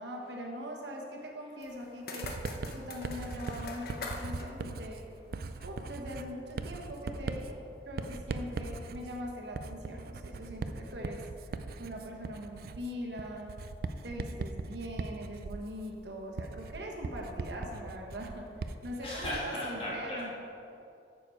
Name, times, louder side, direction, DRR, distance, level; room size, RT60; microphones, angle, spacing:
voice 1, 0.0-2.3 2.7-5.0 5.6-7.6 7.8-13.6 14.0-20.3, equal, 80° right, 0 dB, 1.3 m, -41 dB
sound 1, 1.6-5.8, left 3 dB, 60° left, 0.9 m, -44 dB
Writing, 2.2-19.6, right 3 dB, 55° right, 0.4 m, -40 dB
voice 2, 19.0-20.4, left 1 dB, 35° left, -6 dB, 2.4 m, -37 dB
9.0 x 7.1 x 4.6 m, 2.6 s
head